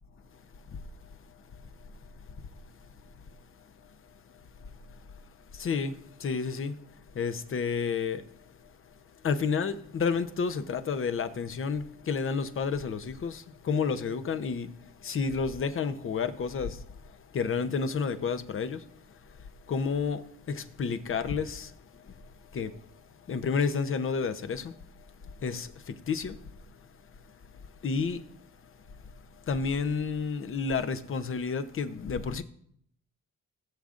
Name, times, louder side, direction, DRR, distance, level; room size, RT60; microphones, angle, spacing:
voice 1, 5.5-6.7 7.1-8.2 9.2-14.7 15.0-16.8 17.3-18.8 19.7-21.7 22.5-22.7 23.3-24.7 25.4-26.4 27.8-28.2 29.5-32.4, left 5 dB, 45° left, 0.9 m, -30 dB
17.5 x 7.3 x 2.6 m
cardioid pair, 90°, 30 cm